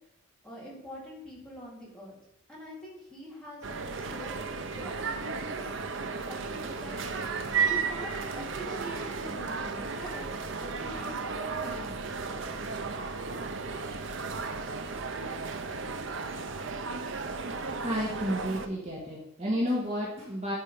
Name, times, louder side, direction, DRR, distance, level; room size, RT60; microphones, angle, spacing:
voice 1, 0.4-2.2 2.5-7.0 7.6-10.3 10.6-12.0, equal, 5° left, -6 dB, 3.7 m, -44 dB
sound 1, 3.6-18.7, right 4 dB, 65° right, 0.8 m, -34 dB
voice 2, 17.8-20.6, equal, 30° right, -5 dB, 2.1 m, -31 dB
10.0 x 5.6 x 5.5 m, 0.79 s
head